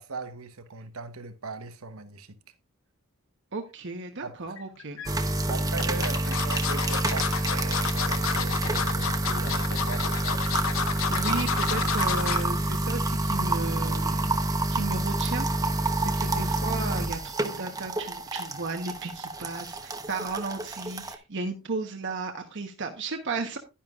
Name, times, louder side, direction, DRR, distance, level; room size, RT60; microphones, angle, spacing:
voice 1, 0.0-2.4 4.2-4.4 5.5-10.5, right 3 dB, 80° right, 1.1 m, -39 dB
voice 2, 3.5-5.0 5.4-5.5 10.9-14.4 14.7-15.5 16.0-23.6, right 3 dB, 60° right, 1.2 m, -34 dB
sound 1, 4.6-5.1 5.8-12.5 12.9-13.1 13.4-13.5, left 6 dB, 70° left, 1.0 m, -30 dB
sound 2, 5.1-21.2, right 2 dB, 15° right, 1.0 m, -28 dB
11.5 x 10.5 x 2.5 m
head